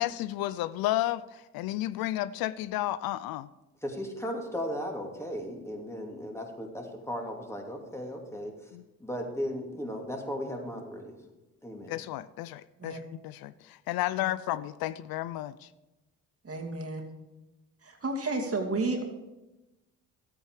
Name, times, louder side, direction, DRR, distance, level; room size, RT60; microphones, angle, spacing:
voice 1, 0.0-3.5 8.7-8.8 11.9-13.0 13.2-15.7, left 15 dB, 70° left, 16 dB, 0.5 m, -32 dB
voice 2, 3.8-8.7 9.0-11.2 11.6-11.9, equal, 5° left, 1 dB, 2.8 m, -36 dB
voice 3, 16.4-17.0 17.8-19.0, right 3 dB, 35° right, 2 dB, 2.5 m, -31 dB
13.0 x 8.7 x 4.9 m, 1.0 s
hypercardioid pair, 55°, 38 cm